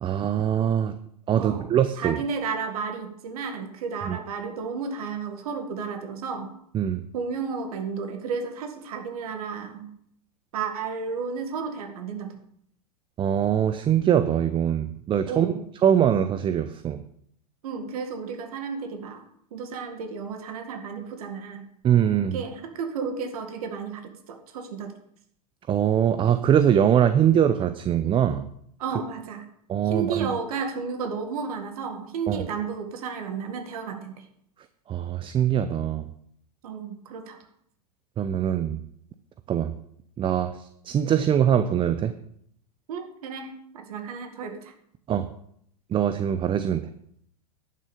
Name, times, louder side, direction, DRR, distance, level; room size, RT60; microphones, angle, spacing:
voice 1, 0.0-0.9 1.3-2.2 4.0-4.2 6.7-7.0 13.2-15.5 15.8-17.0 21.8-22.4 25.7-28.5 29.7-30.3 32.3-32.4 34.9-36.1 38.2-38.8 39.5-39.7 40.2-42.1 45.1-45.3 45.9-46.9, right 9 dB, 25° right, 11 dB, 0.6 m, -22 dB
voice 2, 1.4-6.5 7.1-9.9 10.5-12.4 15.3-15.7 17.6-19.2 19.5-21.7 22.3-24.9 28.8-29.4 29.8-34.2 36.6-37.4 42.9-44.7, right 5 dB, 65° right, 6 dB, 1.9 m, -33 dB
11.0 x 6.3 x 6.7 m, 0.70 s
hypercardioid pair, 95°, 20 cm